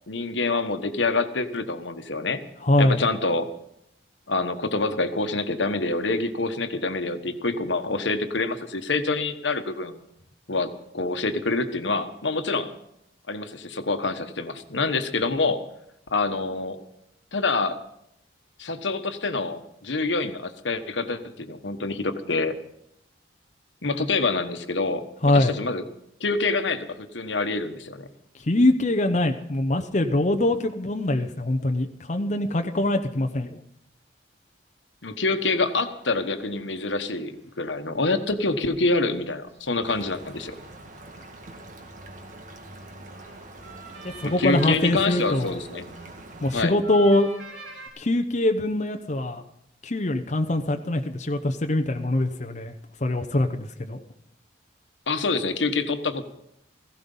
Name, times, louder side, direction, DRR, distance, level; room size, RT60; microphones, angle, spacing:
voice 1, 0.1-2.4 2.8-3.5 4.3-10.0 10.5-12.7 13.3-15.6 16.1-16.8 17.3-17.8 18.6-22.5 23.8-25.8 26.2-28.1 35.0-40.5 44.2-45.8 46.5-46.8 55.1-56.2, left 3 dB, 80° left, 8 dB, 1.3 m, -26 dB
voice 2, 2.6-3.0 25.2-25.5 28.5-33.6 44.2-45.6 46.4-47.3 48.0-49.4 49.8-52.7 53.0-54.0, left 1 dB, 40° left, 6 dB, 0.8 m, -23 dB
sound 1, 35.3-47.9, right 2 dB, 80° right, 7.5 m, -49 dB
sound 2, 39.8-46.5, right 2 dB, 45° right, 1.7 m, -44 dB
16.5 x 16.0 x 5.5 m, 0.78 s
head